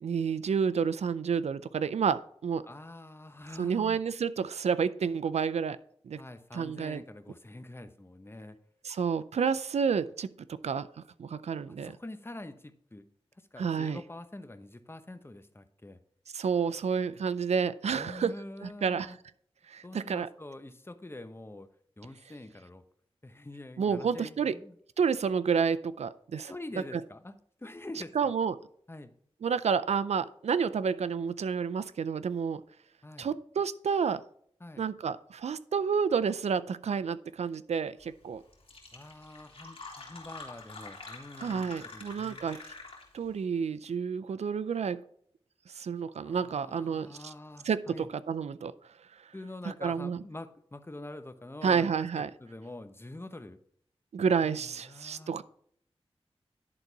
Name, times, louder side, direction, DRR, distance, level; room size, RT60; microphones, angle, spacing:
voice 1, 0.0-2.6 3.6-5.8 6.0-6.2 6.5-7.0 8.8-10.9 11.2-11.9 13.6-14.0 16.3-18.3 18.6-19.2 19.7-20.3 23.8-24.5 25.0-26.5 26.9-27.0 28.1-28.6 29.4-32.6 33.2-34.2 34.8-38.4 41.4-42.6 43.1-45.0 45.7-47.3 47.6-48.7 49.7-50.2 51.6-52.3 54.1-55.4, right 6 dB, 85° right, 15 dB, 0.4 m, -30 dB
voice 2, 2.7-4.0 6.2-8.6 11.7-13.0 13.4-16.0 17.9-19.2 19.8-21.7 22.0-22.8 23.2-24.7 26.5-28.3 28.9-29.1 33.0-33.3 34.6-34.9 38.9-42.4 46.2-48.1 49.3-51.9 52.2-53.6 54.4-55.4, left 2 dB, 20° left, 9 dB, 1.0 m, -45 dB
Fill (with liquid), 38.2-38.3 38.5-43.3, left 3 dB, 60° left, 2.9 m, -47 dB
11.0 x 3.9 x 4.6 m, 0.62 s
cardioid pair, 45°, 11 cm